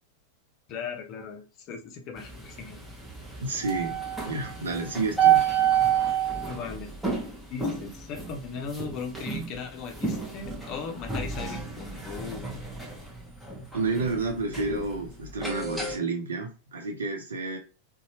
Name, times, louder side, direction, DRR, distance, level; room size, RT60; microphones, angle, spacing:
voice 1, 0.7-2.8 6.5-6.9 7.2-12.5, left 5 dB, 35° left, 0.6 m, -38 dB
sound 1, 2.2-16.0, right 8 dB, 5° right, 0.9 m, -30 dB
voice 2, 3.4-4.0 4.3-5.4 13.7-17.6, right 3 dB, 70° right, 0.7 m, -30 dB
2.7 x 2.2 x 2.9 m
figure-of-eight pair, 90°, 0 cm